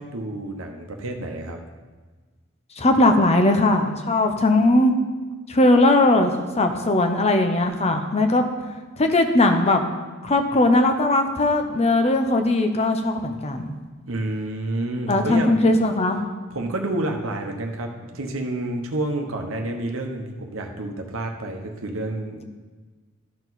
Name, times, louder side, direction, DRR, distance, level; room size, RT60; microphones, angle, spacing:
voice 1, 0.0-1.6 14.1-15.7 16.5-22.4, right 2 dB, 65° right, 3 dB, 1.0 m, -29 dB
voice 2, 2.8-4.9 5.5-6.3 6.6-8.5 9.0-9.8 10.2-13.7 15.1-16.2, left 2 dB, 30° left, 5 dB, 0.7 m, -19 dB
13.0 x 4.7 x 4.0 m, 1.3 s
head